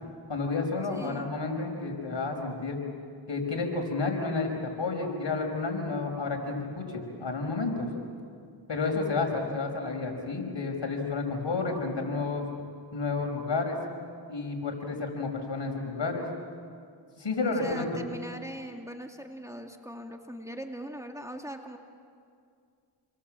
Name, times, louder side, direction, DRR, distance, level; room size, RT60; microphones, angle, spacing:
voice 1, 0.3-2.8 3.3-7.9 8.7-12.5 12.9-13.8 14.3-16.3 17.2-17.9, left 3 dB, 60° left, 2 dB, 5.4 m, -31 dB
voice 2, 0.9-1.3 17.4-21.8, right 1 dB, 5° right, 3 dB, 2.3 m, -40 dB
29.5 x 22.5 x 7.6 m, 2.3 s
cardioid pair, 45°, 48 cm